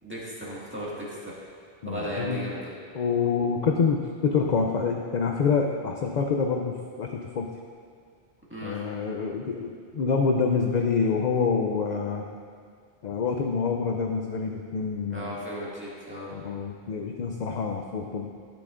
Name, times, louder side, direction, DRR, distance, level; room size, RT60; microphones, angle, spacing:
voice 1, 0.0-1.3 1.8-2.7 8.5-8.8 15.1-16.3, equal, 10° right, -7 dB, 1.8 m, -35 dB
voice 2, 1.8-2.4 2.9-7.5 8.6-12.3 13.0-15.4 16.3-18.3, left 5 dB, 55° left, 2 dB, 0.6 m, -27 dB
12.0 x 8.8 x 2.5 m, 2.1 s
omnidirectional pair, 1.0 m